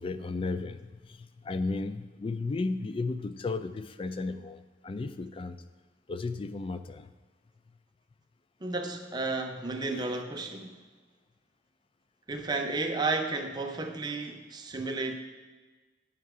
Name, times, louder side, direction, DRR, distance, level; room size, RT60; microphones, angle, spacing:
voice 1, 0.0-5.6 6.1-7.1, left 3 dB, 25° left, 11 dB, 0.3 m, -34 dB
voice 2, 8.6-10.8 12.3-15.1, right 3 dB, 20° right, 4 dB, 0.6 m, -32 dB
9.0 x 5.5 x 4.9 m, 1.3 s
head